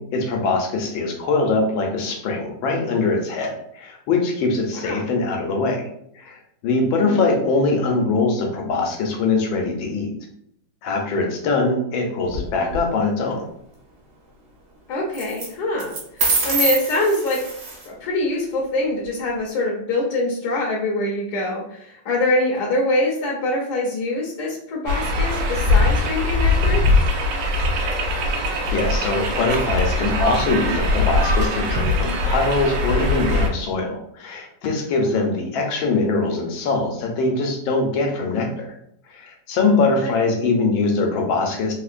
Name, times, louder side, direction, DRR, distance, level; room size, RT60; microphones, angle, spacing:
voice 1, 0.0-5.9 6.1-10.1 10.8-13.5 28.2-38.7 39.1-41.7, left 3 dB, 85° left, 2 dB, 1.5 m, -22 dB
voice 2, 7.0-7.3 14.9-17.5 17.8-26.8 35.0-35.2 40.0-40.2, left 1 dB, 65° left, -4 dB, 1.1 m, -24 dB
sound 1, 12.3-12.8 15.1-15.5 15.8-17.9, right 3 dB, 55° right, 1.5 m, -24 dB
sound 2, 24.9-33.5, left 2 dB, 70° right, 1.2 m, -21 dB
3.7 x 2.8 x 2.4 m, 0.71 s
omnidirectional pair, 2.1 m